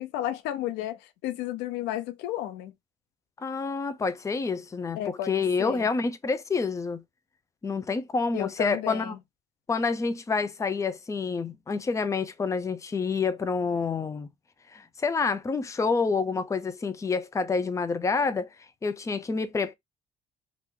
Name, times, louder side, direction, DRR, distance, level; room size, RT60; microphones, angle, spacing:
voice 1, 0.0-2.7 5.0-5.9 8.3-9.2, left 13 dB, 90° left, 0.5 m, -33 dB
voice 2, 3.4-7.0 7.6-9.2 9.7-14.3 14.7-18.5 18.8-19.7, left 4 dB, 20° left, 0.5 m, -28 dB
3.0 x 2.6 x 3.6 m
cardioid pair, 110°, 17 cm